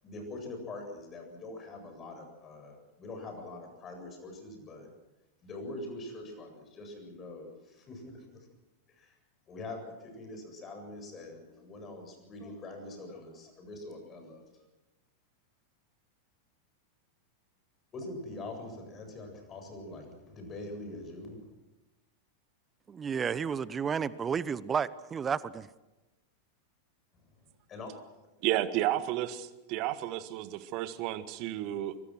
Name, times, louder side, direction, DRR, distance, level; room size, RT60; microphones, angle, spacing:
voice 1, 0.0-4.9 5.4-8.4 8.9-9.2 9.5-14.7 17.9-21.5 27.7-27.9, left 2 dB, 25° left, 4 dB, 8.0 m, -44 dB
voice 2, 22.9-25.7, right 6 dB, 20° right, 19 dB, 0.8 m, -32 dB
voice 3, 28.4-32.0, right 13 dB, 40° right, 13 dB, 1.7 m, -32 dB
25.0 x 23.5 x 6.3 m, 1.0 s
figure-of-eight pair, 90°, 0 cm